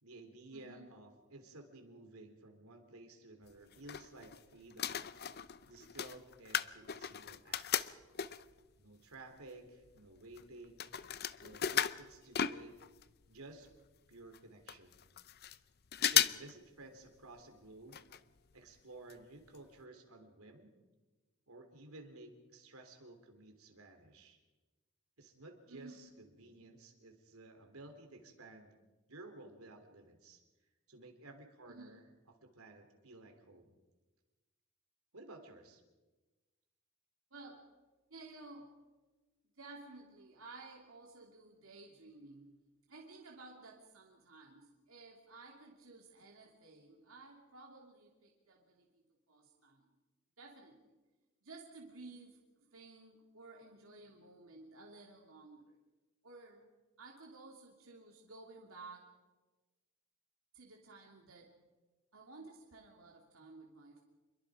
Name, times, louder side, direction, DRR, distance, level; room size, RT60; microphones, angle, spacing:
voice 1, 0.0-5.3 5.7-8.0 8.8-12.8 13.3-13.7 14.1-15.0 16.0-18.0 18.5-20.7 21.5-24.4 25.2-28.8 29.1-30.4 30.9-32.1 32.4-33.8 35.1-35.8, right 2 dB, 85° right, 5 dB, 3.6 m, -54 dB
voice 2, 0.5-0.9 25.7-26.0 31.7-32.0 37.3-37.7 38.1-38.8 39.5-42.6 42.9-49.9 50.4-51.0 51.4-55.8 56.2-56.7 57.0-59.1 60.5-61.5 62.1-64.0, right 3 dB, 70° right, -1 dB, 2.9 m, -55 dB
sound 1, 3.5-4.4 4.7-8.6 9.2-9.3 9.5-13.1 13.4-13.5 13.7-13.8 14.3-14.4 14.7-15.6 15.9-16.5 16.8-16.9 17.9-18.2 18.5-18.6 19.1-19.2 19.6-19.7, left 10 dB, 50° left, 0.7 m, -36 dB
27.5 x 22.5 x 5.0 m, 1.2 s
head